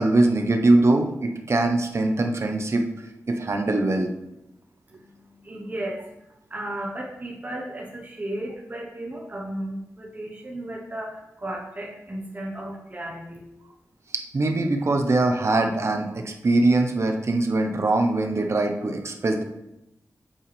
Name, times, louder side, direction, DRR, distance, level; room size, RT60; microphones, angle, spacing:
voice 1, 0.0-2.8 3.3-4.1 14.1-19.4, right 2 dB, 50° right, 4 dB, 1.1 m, -22 dB
voice 2, 4.9-6.0 6.5-13.5, right 1 dB, 30° right, -2 dB, 1.2 m, -34 dB
8.7 x 7.8 x 3.5 m, 0.87 s
wide cardioid pair, 125°, 6 cm